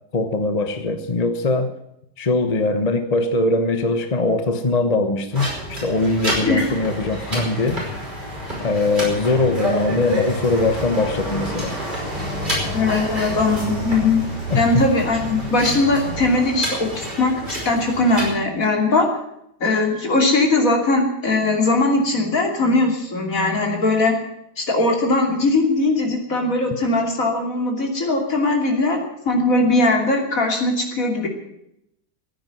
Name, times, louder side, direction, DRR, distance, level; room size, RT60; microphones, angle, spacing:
voice 1, 0.1-1.7 2.2-7.8 8.6-11.8 14.5-14.6, left 2 dB, 30° left, 8 dB, 1.0 m, -21 dB
sound 1, 5.3-18.3, equal, 25° right, 5.5 m, -29 dB
voice 2, 6.4-6.7 12.7-14.2 14.5-17.3 17.6-19.1 19.6-24.1 24.6-29.0 29.2-31.3, left 2 dB, 55° left, 2 dB, 3.2 m, -20 dB
sound 2, 10.6-16.4, right 7 dB, 80° right, 1.8 m, -34 dB
15.0 x 9.2 x 9.3 m, 0.79 s
omnidirectional pair, 1.8 m